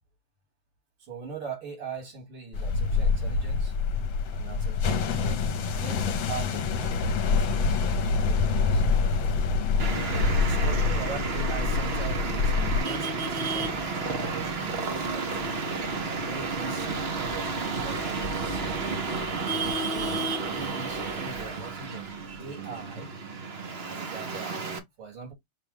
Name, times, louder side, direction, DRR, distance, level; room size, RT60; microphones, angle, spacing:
voice 1, 1.0-3.8 4.2-8.9 10.3-15.5 16.2-19.2 19.8-22.1 22.4-23.1 23.9-25.3, right 5 dB, 85° right, 3.5 m, -42 dB
sound 1, 2.5-12.8, left 4 dB, 70° left, 1.5 m, -26 dB
Thunder, 6.1-22.7, left 5 dB, 35° left, 0.6 m, -46 dB
Traffic noise roadway noise, 9.8-24.8, right 4 dB, 65° right, 0.6 m, -31 dB
6.6 x 2.2 x 3.4 m
omnidirectional pair, 2.4 m